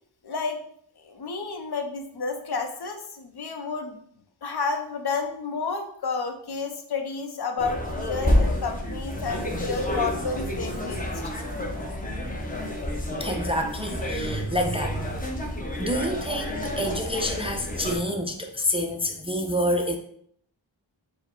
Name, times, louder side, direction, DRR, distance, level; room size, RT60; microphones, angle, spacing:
voice 1, 0.2-0.6 1.0-4.0 4.4-11.3, left 4 dB, 55° left, 5 dB, 0.7 m, -31 dB
sound 1, 7.6-18.0, left 1 dB, 20° left, 0.7 m, -29 dB
voice 2, 13.2-15.1 15.8-20.0, equal, 15° right, 3 dB, 0.3 m, -28 dB
4.5 x 2.1 x 4.4 m, 0.65 s
wide cardioid pair, 90°, 46 cm